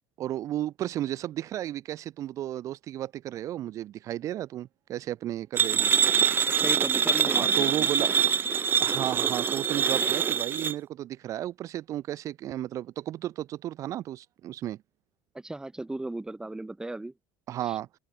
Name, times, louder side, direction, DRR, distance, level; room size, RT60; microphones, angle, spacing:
voice 1, 0.2-5.9 7.3-8.1 8.8-14.8 17.5-17.9, right 13 dB, 55° right, 5.3 m, -33 dB
sound 1, 5.6-10.7, right 7 dB, 35° right, 0.9 m, -24 dB
voice 2, 6.6-7.9 15.3-17.1 17.6-17.8, right 2 dB, 10° right, 5.5 m, -36 dB
open air
supercardioid pair, 85°, 7 cm